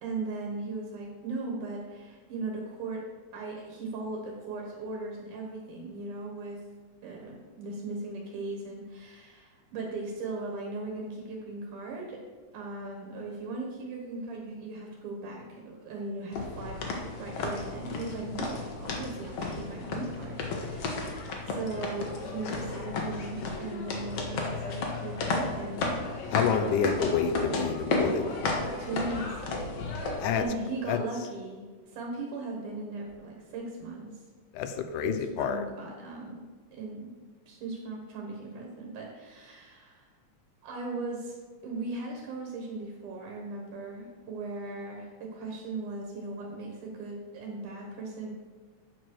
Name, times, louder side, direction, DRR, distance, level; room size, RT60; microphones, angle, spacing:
voice 1, 0.0-3.1 3.3-6.6 7.0-12.2 12.5-26.4 28.8-29.4 30.3-34.2 35.0-36.4 36.7-37.1 37.5-40.1 40.6-41.4 41.6-48.3, right 3 dB, 85° right, -1 dB, 2.9 m, -38 dB
sound 1, 16.3-30.4, left 3 dB, 60° left, 1.9 m, -33 dB
voice 2, 26.3-28.3 30.2-30.4 30.9-31.0 34.5-35.7, left 7 dB, 85° left, 8 dB, 2.2 m, -28 dB
9.2 x 4.7 x 6.2 m, 1.4 s
omnidirectional pair, 3.5 m